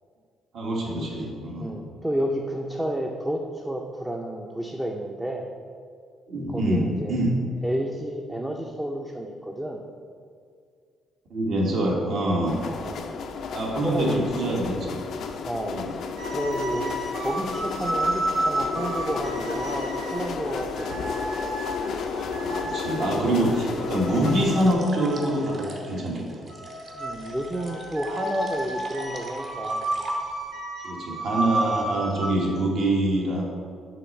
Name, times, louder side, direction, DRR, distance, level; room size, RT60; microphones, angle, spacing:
voice 1, 0.5-1.7 6.3-7.3 11.3-12.5 13.5-14.9 15.7-15.9 22.1-26.4 30.8-33.5, right 1 dB, 65° right, -2 dB, 1.3 m, -25 dB
voice 2, 1.6-5.5 6.5-7.2 7.6-9.8 12.6-13.0 13.8-14.3 15.4-15.8 16.3-16.9 17.2-20.9 26.9-29.9, right 1 dB, 10° right, 1 dB, 0.4 m, -30 dB
sound 1, 12.5-24.7, left 5 dB, 70° left, 0.4 m, -32 dB
sound 2, 16.2-25.7 26.5-32.3, right 1 dB, 85° right, 1.2 m, -32 dB
sound 3, 24.4-30.6, right 2 dB, 50° right, 0.9 m, -43 dB
5.7 x 3.2 x 5.2 m, 2.2 s
cardioid pair, 90°, 0 cm